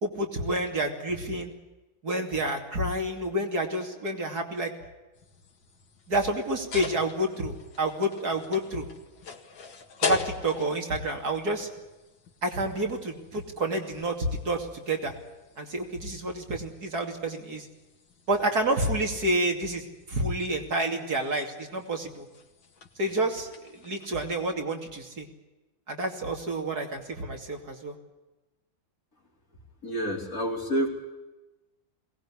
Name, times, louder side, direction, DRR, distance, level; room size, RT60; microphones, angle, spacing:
voice 1, 0.0-1.5 2.0-4.7 6.1-8.9 10.0-11.7 12.4-15.1 15.6-17.7 18.3-22.3 23.0-25.3 25.9-28.0, right 1 dB, 55° right, 3 dB, 3.2 m, -29 dB
sound 1, 5.1-24.5, left 5 dB, 85° left, 2.8 m, -42 dB
voice 2, 29.8-30.9, equal, 45° left, 0 dB, 4.9 m, -28 dB
22.0 x 19.0 x 9.9 m, 1.1 s
omnidirectional pair, 2.1 m